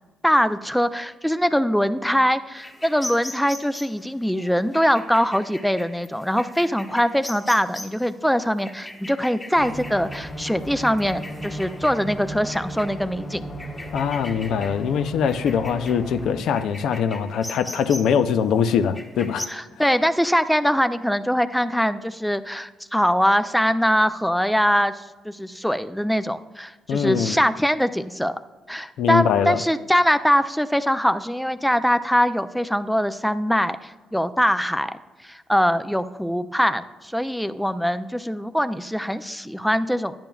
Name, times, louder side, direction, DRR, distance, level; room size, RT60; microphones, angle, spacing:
voice 1, 0.2-13.4 19.5-28.4 28.7-34.9 35.2-40.1, equal, ahead, 11 dB, 0.3 m, -22 dB
sound 1, 2.6-19.5, left 1 dB, 20° left, 1.4 m, -40 dB
sound 2, 9.5-16.4, equal, 50° left, 1.7 m, -36 dB
voice 2, 13.9-19.5 26.9-27.4 29.0-29.6, left 7 dB, 80° left, 10 dB, 0.4 m, -22 dB
10.5 x 8.8 x 2.3 m, 1.3 s
cardioid pair, 90°, 0 cm